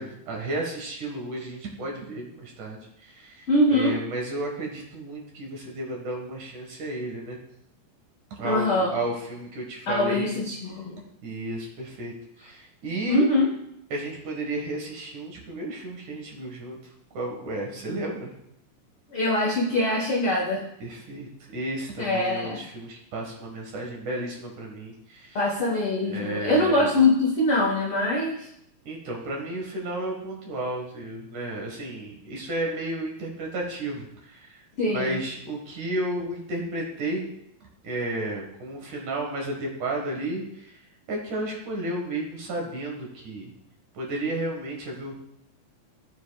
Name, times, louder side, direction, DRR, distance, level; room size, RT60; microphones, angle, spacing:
voice 1, 0.0-7.4 8.3-10.3 11.2-12.1 12.4-13.3 13.9-16.8 17.1-18.3 20.8-25.4 26.1-26.8 28.9-34.6 34.9-37.3 37.8-40.8 41.1-43.5 43.9-45.1, right 1 dB, 60° right, 0 dB, 2.6 m, -33 dB
voice 2, 3.5-3.9 8.4-8.9 9.9-11.0 13.1-13.5 19.1-20.6 22.0-22.6 25.3-28.5 34.8-35.2, left 2 dB, 75° left, -3 dB, 1.2 m, -23 dB
16.5 x 7.3 x 2.3 m, 0.77 s
omnidirectional pair, 4.7 m